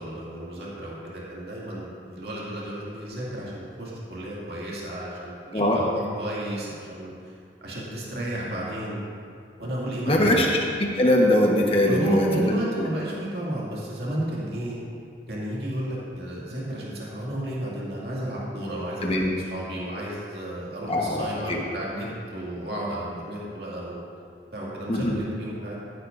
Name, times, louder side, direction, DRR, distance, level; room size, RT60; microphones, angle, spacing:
voice 1, 0.0-7.3 7.6-9.0 9.6-10.5 11.9-14.8 15.3-24.0 24.5-25.8, right 1 dB, 60° right, -6 dB, 2.4 m, -32 dB
voice 2, 10.1-10.5 10.8-12.3 12.8-12.9 19.0-19.3 20.9-21.6 24.9-25.2, left 1 dB, 30° left, -1 dB, 1.2 m, -21 dB
14.5 x 11.0 x 2.6 m, 2.4 s
head